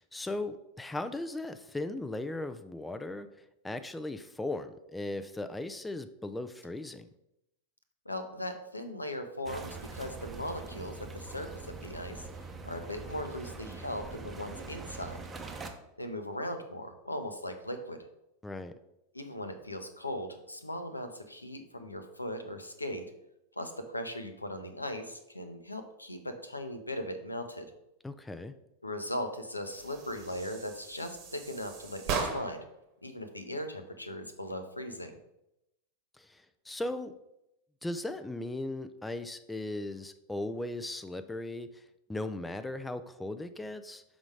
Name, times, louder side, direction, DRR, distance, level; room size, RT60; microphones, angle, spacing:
voice 1, 0.0-3.3 3.6-7.1 18.4-18.8 28.0-28.5 36.2-37.1 37.8-41.8 42.1-44.0, left 2 dB, 5° left, 10 dB, 0.4 m, -37 dB
voice 2, 8.1-12.3 12.6-15.2 16.0-18.0 19.1-23.1 23.6-27.7 28.8-32.6 33.0-35.2, left 1 dB, 85° left, 7 dB, 0.7 m, -38 dB
sound 1, 9.4-15.7, right 3 dB, 20° right, 0.7 m, -43 dB
sound 2, 29.6-32.7, right 5 dB, 40° right, 1.1 m, -38 dB
6.1 x 3.8 x 4.8 m, 0.86 s
figure-of-eight pair, 90°, 0 cm